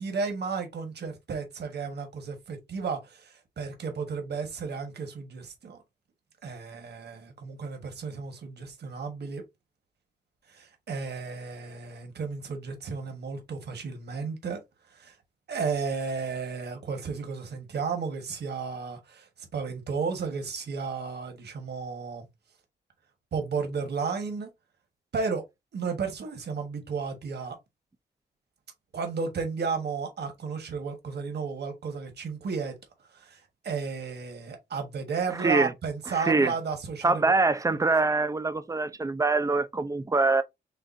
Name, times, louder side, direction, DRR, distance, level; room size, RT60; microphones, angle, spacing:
voice 1, 0.0-5.8 6.4-9.4 10.5-14.6 14.9-15.1 15.5-22.2 23.3-24.5 25.1-25.4 25.7-27.6 28.9-32.8 33.1-37.3 37.7-37.9, right 5 dB, 65° right, 1.4 m, -33 dB
voice 2, 35.4-35.7 36.1-36.5 37.0-40.4, right 3 dB, 15° right, 0.5 m, -24 dB
6.7 x 2.5 x 2.6 m
wide cardioid pair, 115°, 19 cm